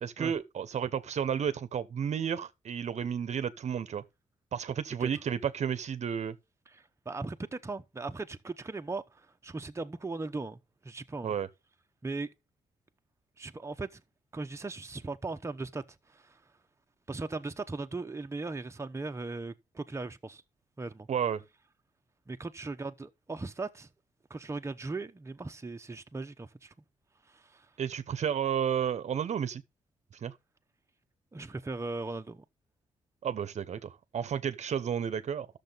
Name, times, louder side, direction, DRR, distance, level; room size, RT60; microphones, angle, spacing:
voice 1, 0.0-4.0 4.5-6.4 11.2-11.5 21.1-21.4 27.8-29.6 30.2-30.3 33.2-35.5, right 8 dB, 60° right, 0.8 m, -32 dB
voice 2, 6.7-11.3 12.0-12.3 13.4-14.0 14.3-16.4 17.1-20.4 20.8-21.1 22.3-23.9 24.3-26.7 27.3-27.7 31.3-32.4, right 3 dB, 20° right, 0.9 m, -38 dB
11.5 x 6.8 x 4.0 m
cardioid pair, 65°, 13 cm